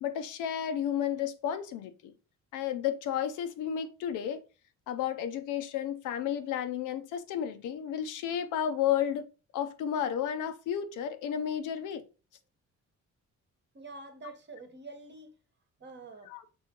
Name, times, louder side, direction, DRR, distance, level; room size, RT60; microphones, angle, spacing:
voice 1, 0.0-2.1 2.5-4.4 4.9-9.3 9.5-12.0 16.3-16.4, left 9 dB, 85° left, 0.6 m, -32 dB
voice 2, 13.7-15.3 15.8-16.3, right 3 dB, 35° right, 1.0 m, -46 dB
5.4 x 3.5 x 2.8 m
cardioid pair, 90°, 30 cm